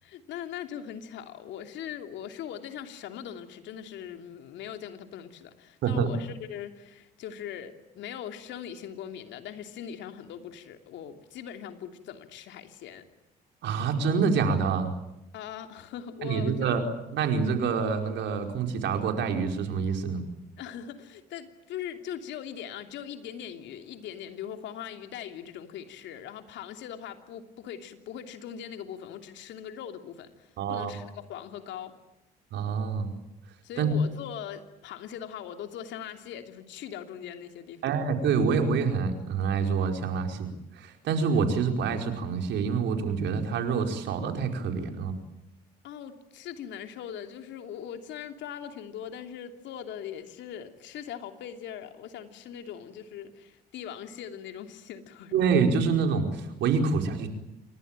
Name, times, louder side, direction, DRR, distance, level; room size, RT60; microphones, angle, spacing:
voice 1, 0.0-13.0 15.3-16.7 20.6-31.9 33.6-37.8 45.8-55.3, left 9 dB, 65° left, 6 dB, 2.9 m, -40 dB
voice 2, 13.6-14.9 16.2-16.8 17.1-20.2 30.6-30.9 32.5-33.1 33.8-33.9 37.8-45.1 55.3-57.3, right 5 dB, 65° right, 4 dB, 4.9 m, -26 dB
28.0 x 23.5 x 9.0 m, 0.90 s
hypercardioid pair, 55°, 20 cm